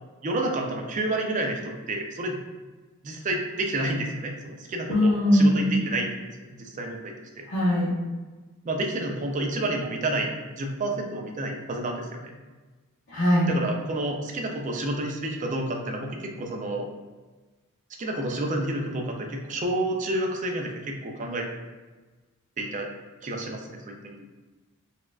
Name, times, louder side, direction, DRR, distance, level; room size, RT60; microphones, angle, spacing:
voice 1, 0.2-2.4 3.0-6.1 6.5-7.4 8.6-10.3 10.6-12.4 13.5-16.9 18.0-21.5 22.6-22.9 23.2-24.3, right 1 dB, 35° right, 1 dB, 0.4 m, -30 dB
voice 2, 4.9-5.8 7.5-7.9 13.1-13.5, equal, 60° left, -9 dB, 0.8 m, -20 dB
4.1 x 2.3 x 2.4 m, 1.3 s
head